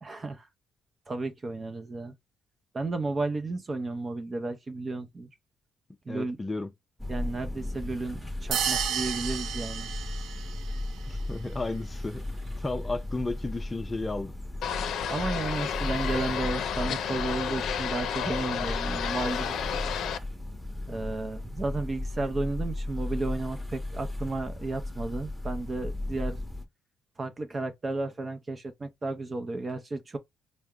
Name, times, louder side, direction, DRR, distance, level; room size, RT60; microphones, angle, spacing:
voice 1, 0.0-0.5 1.1-2.1 2.7-5.3 6.1-6.4 7.1-9.9 15.1-19.6 20.9-26.4 27.2-30.2, right 3 dB, 30° right, 0.6 m, -33 dB
voice 2, 6.1-6.7 11.1-12.2 12.6-14.3, left 2 dB, 20° left, 0.5 m, -33 dB
sound 1, 7.0-26.7, left 1 dB, 10° right, 1.0 m, -36 dB
sound 2, 8.5-10.8, right 8 dB, 80° right, 0.6 m, -31 dB
sound 3, 14.6-20.2, left 8 dB, 75° left, 0.5 m, -32 dB
4.5 x 2.1 x 3.6 m
cardioid pair, 90°, 0 cm